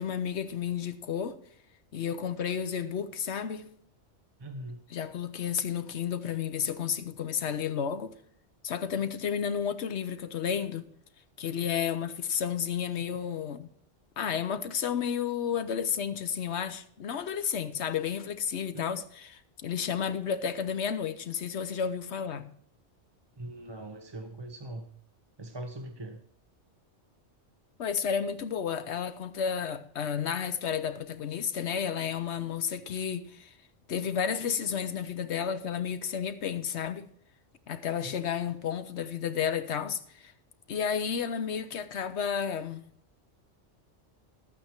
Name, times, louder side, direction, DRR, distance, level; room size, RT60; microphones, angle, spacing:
voice 1, 0.0-1.4 1.9-3.7 4.9-8.2 8.6-10.9 11.4-13.7 14.2-22.5 27.8-33.5 33.9-37.1 37.7-40.3 40.7-42.9, left 7 dB, 70° left, 1.1 m, -32 dB
voice 2, 4.4-4.8 18.7-19.0 23.4-24.9 25.4-26.2 38.0-38.3, right 1 dB, 25° right, 0.7 m, -41 dB
13.0 x 8.7 x 4.5 m
omnidirectional pair, 1.2 m